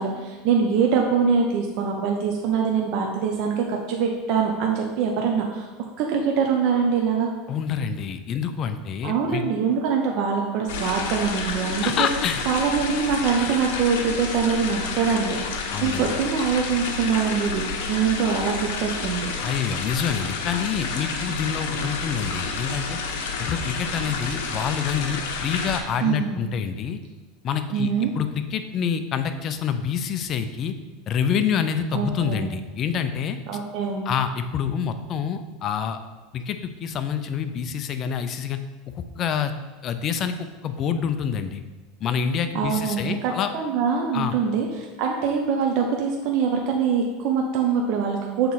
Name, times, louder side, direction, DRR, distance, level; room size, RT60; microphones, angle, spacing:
voice 1, 0.0-5.7 6.0-7.3 9.0-12.1 12.5-15.4 15.8-19.3 26.0-26.4 27.7-28.1 31.9-32.5 33.5-34.1 42.5-48.5, right 6 dB, 50° right, 1 dB, 0.7 m, -24 dB
voice 2, 7.5-9.4 11.8-12.4 15.7-16.1 19.4-23.0 23.4-27.0 27.4-30.8 31.1-33.4 34.1-36.0 36.3-38.6 38.9-39.5 39.8-41.6 42.0-43.5 44.1-44.3, left 7 dB, 35° left, 9 dB, 0.4 m, -27 dB
sound 1, 10.7-25.8, left 4 dB, 75° left, 0.9 m, -30 dB
6.7 x 4.1 x 4.1 m, 1.3 s
supercardioid pair, 145°, 0 cm